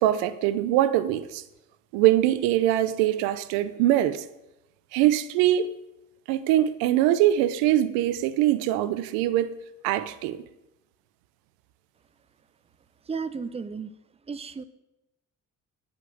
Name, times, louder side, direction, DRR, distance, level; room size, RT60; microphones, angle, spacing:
voice 1, 0.0-1.4 1.9-4.2 4.9-5.7 6.3-9.6 9.8-10.4, right 13 dB, 90° right, 0.5 m, -23 dB
voice 2, 13.0-13.9 14.2-14.6, right 5 dB, 15° right, 0.5 m, -33 dB
9.2 x 5.1 x 6.2 m
supercardioid pair, 55°, 36 cm